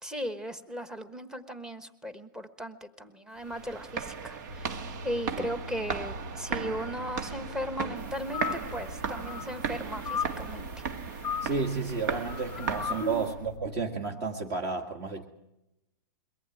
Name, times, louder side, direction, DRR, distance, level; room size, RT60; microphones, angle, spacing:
voice 1, 0.0-10.7 13.0-13.2, equal, 5° right, 10 dB, 1.3 m, -37 dB
sound 1, 3.4-13.4, right 6 dB, 55° right, 2.0 m, -37 dB
sound 2, 4.5-13.8, equal, 80° right, 1.8 m, -45 dB
sound 3, 8.3-8.9 9.2-9.6 10.0-10.4 11.2-11.7 12.3-13.1, left 8 dB, 10° left, 1.1 m, -35 dB
voice 2, 11.4-15.2, right 4 dB, 35° right, 3 dB, 2.0 m, -32 dB
23.0 x 18.5 x 9.2 m, 0.89 s
supercardioid pair, 165°, 11 cm